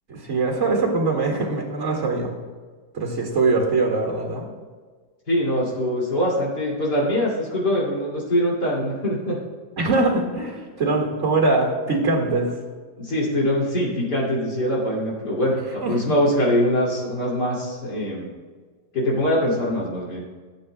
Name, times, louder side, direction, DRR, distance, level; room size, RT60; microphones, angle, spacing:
voice 1, 0.1-2.3 2.9-4.5 9.8-12.5 15.8-16.2, right 3 dB, 40° right, 1 dB, 2.1 m, -22 dB
voice 2, 5.3-9.4 10.8-10.9 13.0-18.3 18.9-20.2, equal, 60° left, -5 dB, 3.0 m, -23 dB
17.0 x 8.6 x 2.2 m, 1.5 s
omnidirectional pair, 2.0 m